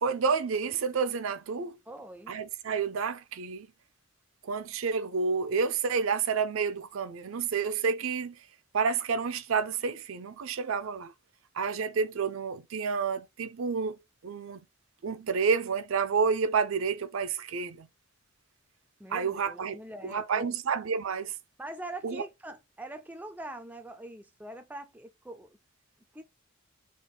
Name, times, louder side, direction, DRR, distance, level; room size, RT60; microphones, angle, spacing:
voice 1, 0.0-1.8 2.3-3.7 4.4-8.3 8.7-11.1 11.5-14.0 14.2-14.6 15.0-17.9 19.1-19.8 20.0-21.3 22.0-22.2, right 5 dB, 70° right, 0.5 m, -29 dB
voice 2, 1.9-2.4 19.0-20.6 21.6-25.6 26.1-26.2, right 1 dB, 5° right, 0.3 m, -43 dB
3.6 x 2.4 x 3.9 m
head